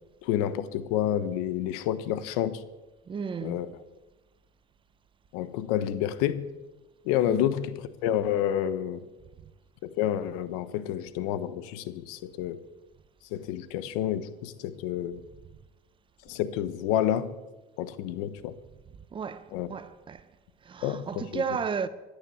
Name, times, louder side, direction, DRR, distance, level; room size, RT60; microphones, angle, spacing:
voice 1, 0.2-2.6 3.4-3.7 5.3-6.5 7.0-9.0 9.8-12.6 13.3-15.2 16.3-17.3 17.8-18.6 19.5-19.7 20.8-21.4, left 11 dB, 80° left, 1.1 m, -29 dB
voice 2, 3.1-3.7 7.2-7.4 19.1-20.2 20.6-21.9, right 6 dB, 25° right, 0.9 m, -33 dB
15.0 x 10.5 x 7.1 m
supercardioid pair, 120°, 19 cm